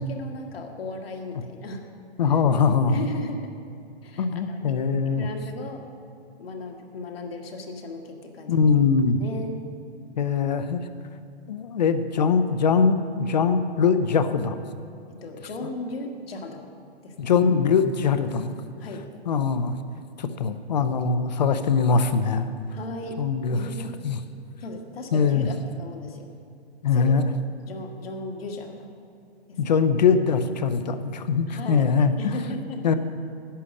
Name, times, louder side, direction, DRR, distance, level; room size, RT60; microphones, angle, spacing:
voice 1, 0.0-1.8 2.3-2.4 2.9-3.5 4.0-4.7 5.0-5.8 6.4-8.7 9.2-9.6 15.2-16.7 17.0-17.3 18.8-19.1 22.7-23.9 24.6-26.3 26.9-27.1 27.6-28.9 29.5-29.8 31.5-31.8 32.2-32.8, left 2 dB, 60° left, 2 dB, 1.7 m, -36 dB
voice 2, 2.2-3.0 4.2-5.3 8.5-9.2 10.2-10.8 11.5-14.6 17.2-18.5 19.3-19.7 20.2-22.5 23.2-23.6 24.0-24.2 25.1-25.5 26.8-27.3 29.6-32.4 32.8-32.9, left 5 dB, 40° left, 11 dB, 0.6 m, -22 dB
11.5 x 8.5 x 6.5 m, 2.6 s
hypercardioid pair, 175°, 33 cm